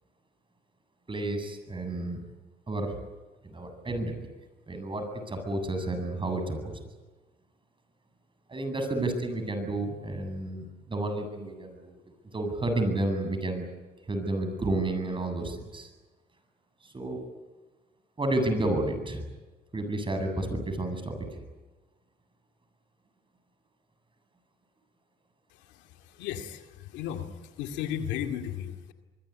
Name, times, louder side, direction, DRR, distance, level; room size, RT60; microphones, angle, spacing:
voice 1, 1.1-2.2 2.7-3.0 3.4-4.1 4.7-6.7 8.5-12.0 12.3-13.7 14.1-15.9 16.8-17.2 18.2-19.2 19.7-21.4, right 2 dB, 30° right, 7 dB, 8.0 m, -31 dB
voice 2, 25.5-28.9, left 9 dB, 90° left, 6 dB, 2.2 m, -35 dB
25.0 x 22.0 x 9.8 m, 1.2 s
supercardioid pair, 75°, 18 cm